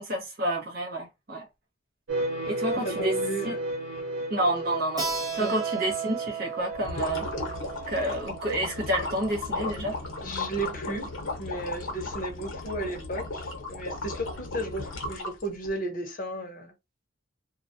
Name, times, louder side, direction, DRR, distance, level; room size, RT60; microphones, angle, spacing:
voice 1, 0.0-1.5 2.5-3.2 3.4-3.6 4.3-5.1 5.3-7.3 7.9-10.0, right 1 dB, 50° right, 0.9 m, -29 dB
sound 1, 2.1-8.8, right 1 dB, 85° right, 1.0 m, -34 dB
voice 2, 2.8-3.6 5.4-5.6 10.2-11.1 11.4-16.7, right 1 dB, 40° left, 0.8 m, -34 dB
Keyboard (musical), 5.0-10.2, right 7 dB, 20° right, 0.5 m, -36 dB
sound 2, 6.7-15.7, left 2 dB, 80° left, 0.8 m, -35 dB
2.2 x 2.2 x 2.6 m
head